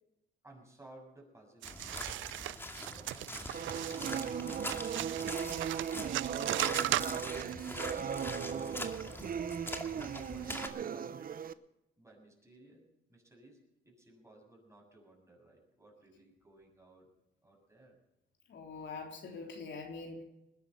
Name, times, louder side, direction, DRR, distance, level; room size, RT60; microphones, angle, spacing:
voice 1, 0.4-3.8 6.4-11.5 12.0-13.6 13.8-17.1 17.4-18.0, right 2 dB, 15° right, 0 dB, 7.1 m, -59 dB
sound 1, 1.6-10.7, left 1 dB, 10° left, 2.2 m, -43 dB
sound 2, 1.6-7.5, right 15 dB, 75° right, 0.4 m, -37 dB
sound 3, 3.5-11.5, right 8 dB, 45° right, 0.8 m, -38 dB
voice 2, 18.5-20.2, left 4 dB, 65° left, 1 dB, 3.6 m, -44 dB
20.5 x 10.5 x 5.6 m, 0.89 s
cardioid pair, 90°, 20 cm